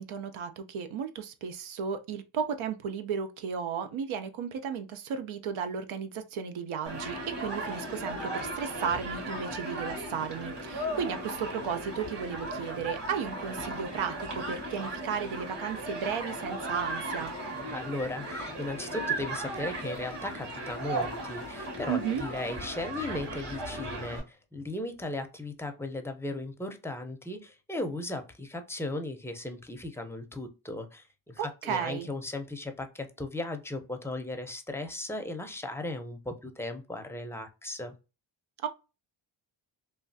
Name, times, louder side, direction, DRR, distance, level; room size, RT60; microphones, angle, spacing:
voice 1, 0.0-17.3 21.9-22.3 31.4-32.1 38.6-38.7, right 7 dB, 75° right, 0.6 m, -34 dB
Human group actions, 6.9-24.2, right 1 dB, 55° right, 1.8 m, -36 dB
voice 2, 17.7-31.4 31.6-37.9, left 2 dB, 5° left, 0.5 m, -37 dB
3.2 x 2.3 x 2.6 m
cardioid pair, 85°, 49 cm